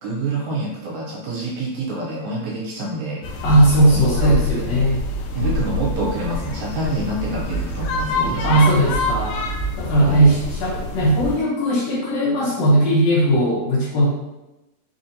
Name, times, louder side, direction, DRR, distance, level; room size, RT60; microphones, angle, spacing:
voice 1, 0.0-3.3 3.8-4.8 5.4-8.9 10.0-10.3, right 2 dB, 75° right, -3 dB, 1.8 m, -27 dB
sound 1, 3.2-11.4, left 2 dB, 90° left, 2.1 m, -26 dB
voice 2, 3.4-5.0 8.4-9.4 9.8-14.1, right 1 dB, 70° left, -6 dB, 1.7 m, -18 dB
4.9 x 2.6 x 2.6 m, 0.99 s
omnidirectional pair, 3.6 m